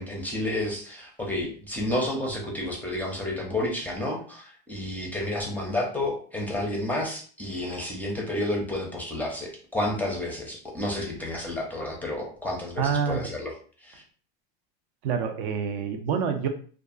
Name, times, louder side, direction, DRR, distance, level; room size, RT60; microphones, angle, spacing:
voice 1, 0.0-13.5 13.8-14.0, left 1 dB, 5° left, -1 dB, 0.5 m, -30 dB
voice 2, 12.8-13.2 15.0-16.5, right 6 dB, 55° right, 6 dB, 0.5 m, -27 dB
2.6 x 2.3 x 2.4 m, 0.44 s
supercardioid pair, 125°, 29 cm